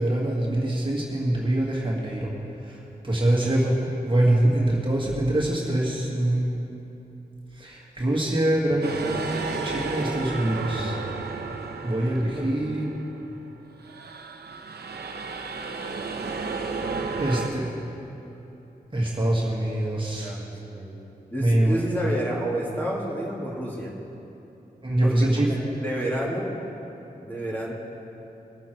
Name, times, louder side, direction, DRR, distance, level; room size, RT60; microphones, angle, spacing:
voice 1, 0.0-2.3 2.6-6.5 7.5-11.0 11.8-12.9 17.2-17.7 18.9-20.4 21.4-21.8 24.8-25.6, right 1 dB, 30° right, -4 dB, 1.9 m, -24 dB
voice 2, 8.7-9.2 12.3-12.5 20.2-20.9 21.3-23.9 25.0-25.5 25.8-26.5 27.2-27.7, right 1 dB, 10° left, -4 dB, 2.8 m, -30 dB
sound 1, 8.8-13.4 13.8-17.5, right 4 dB, 85° right, 0.9 m, -33 dB
21.0 x 7.2 x 4.6 m, 3.0 s
wide cardioid pair, 65°, 16 cm